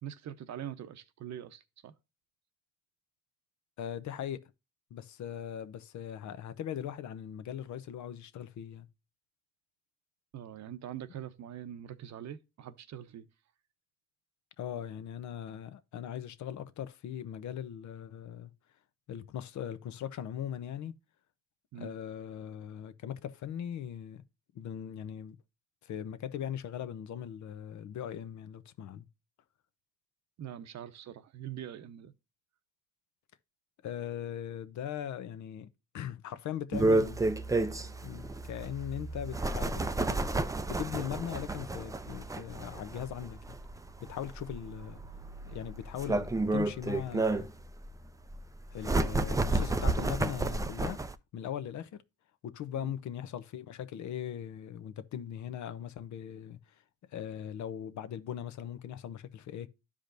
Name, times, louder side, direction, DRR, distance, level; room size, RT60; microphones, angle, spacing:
voice 1, 0.0-1.9 10.3-13.3 21.7-22.0 30.4-32.1 52.7-52.9, right 10 dB, 65° right, 0.8 m, -43 dB
voice 2, 3.8-4.5 4.9-8.9 14.6-18.5 19.1-20.9 21.7-24.2 24.5-25.4 25.8-29.1 33.8-35.7 35.9-37.2 38.0-40.2 40.7-43.6 44.0-45.0 45.5-47.5 48.7-51.0 51.3-52.0 52.4-56.6 57.1-59.7, left 10 dB, 70° left, 0.8 m, -39 dB
sound 1, 36.7-51.1, right 2 dB, 10° right, 0.4 m, -31 dB
12.0 x 5.0 x 2.5 m
cardioid pair, 90°, 30 cm